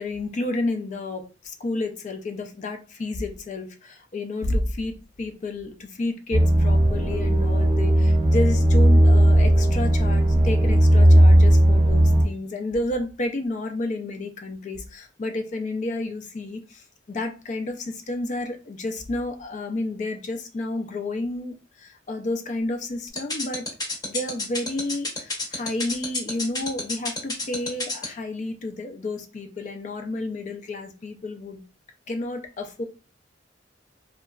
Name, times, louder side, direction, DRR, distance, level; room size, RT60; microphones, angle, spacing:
voice 1, 0.0-23.6 24.0-31.6 32.1-32.8, left 2 dB, 40° left, 0.4 m, -31 dB
sound 1, 6.3-12.3, right 1 dB, 40° right, 0.6 m, -16 dB
sound 2, 23.2-28.0, left 2 dB, 20° left, 0.8 m, -28 dB
2.8 x 2.3 x 2.3 m
head